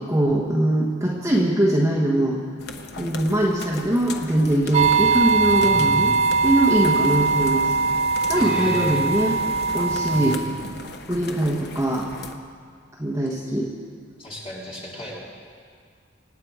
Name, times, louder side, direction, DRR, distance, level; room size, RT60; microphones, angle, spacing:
voice 1, 0.0-2.4 3.0-6.2 6.4-7.7 8.3-9.4 9.7-10.4 11.1-12.1 13.0-13.7, right 1 dB, 15° right, -3 dB, 1.2 m, -22 dB
sound 1, 2.6-12.3, left 3 dB, 55° left, 0.9 m, -38 dB
sound 2, 4.7-10.4, right 4 dB, 30° right, 0.3 m, -21 dB
voice 2, 5.5-6.1 8.3-9.0 10.1-10.6 14.2-15.2, equal, 25° left, -5 dB, 3.0 m, -35 dB
25.0 x 9.5 x 4.8 m, 2.1 s
head